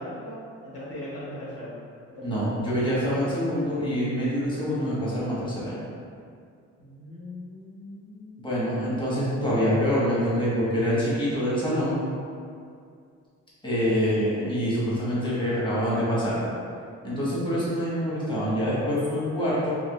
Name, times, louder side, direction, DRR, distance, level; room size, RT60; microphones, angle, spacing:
voice 1, 0.0-1.7 2.1-2.5 6.8-8.4, left 1 dB, 50° left, -9 dB, 1.0 m, -39 dB
voice 2, 2.2-5.9 8.4-12.0 13.6-16.5 17.0-19.7, equal, 15° left, -9 dB, 1.2 m, -25 dB
3.6 x 3.0 x 2.4 m, 2.3 s
cardioid pair, 90°, 30 cm